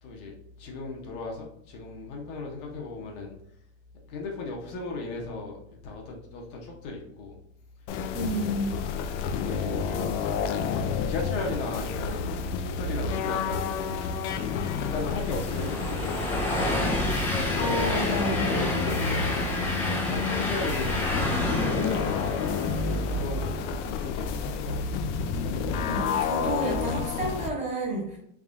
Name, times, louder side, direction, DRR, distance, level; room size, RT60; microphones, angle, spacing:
voice 1, 0.0-3.3 4.0-7.4 9.3-10.3 10.8-13.8 14.9-17.2 19.2-19.5 20.0-22.3 23.0-25.0, left 3 dB, 45° left, 0 dB, 0.8 m, -36 dB
sound 1, 7.9-27.5, left 5 dB, 70° left, 0.5 m, -30 dB
voice 2, 8.1-8.8 17.6-18.5 25.8-28.2, right 1 dB, 20° right, -3 dB, 0.9 m, -30 dB
Train, 13.9-23.3, left 2 dB, 5° left, 0.4 m, -31 dB
Electric guitar / Strum, 18.4-23.5, right 4 dB, 50° right, 0.6 m, -40 dB
3.6 x 3.2 x 2.5 m, 0.75 s
supercardioid pair, 145°, 37 cm